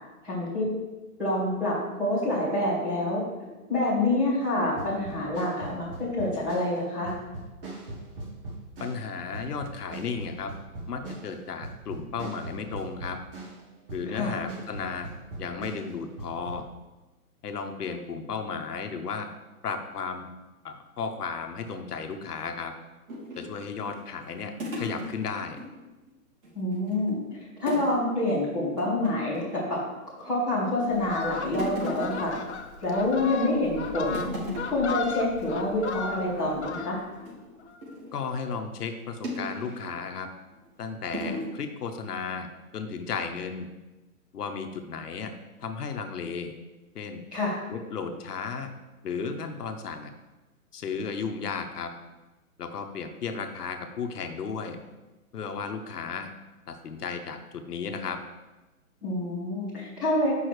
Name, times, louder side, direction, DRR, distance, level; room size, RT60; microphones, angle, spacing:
voice 1, 0.2-0.7 1.2-3.2 3.7-7.1 14.1-14.4 26.5-27.2 27.6-29.8 30.2-32.3 32.8-34.3 34.7-37.0 47.3-47.6 59.0-60.5, left 1 dB, 5° right, -13 dB, 1.0 m, -27 dB
sound 1, 4.8-13.6 13.9-16.6, right 2 dB, 35° right, 1.3 m, -40 dB
voice 2, 8.8-10.5 10.9-13.2 13.9-15.1 15.4-16.7 17.4-19.3 19.6-20.3 20.6-22.7 23.3-25.6 38.1-40.3 40.8-42.5 42.7-43.7 44.3-45.3 45.6-46.5 46.9-47.2 47.7-48.7 49.0-50.1 50.7-51.9 52.6-54.8 55.3-56.3 56.7-58.2, left 5 dB, 85° left, 6 dB, 1.0 m, -34 dB
sound 2, 23.1-25.7 26.0-26.1 26.4-27.1 27.7-28.0 28.3-28.4 28.8-29.6 30.1-30.7 31.0-33.1 33.5-33.8 34.1-34.9 35.3-35.4 35.7-36.0 36.4-38.2 39.2-39.9 40.5-40.7 41.1-41.5, equal, 65° right, 2.6 m, -37 dB
Fowl, 30.9-37.3 37.6-37.8, left 5 dB, 50° left, 0.5 m, -36 dB
8.1 x 5.6 x 3.2 m, 1.1 s
hypercardioid pair, 175°, 45 cm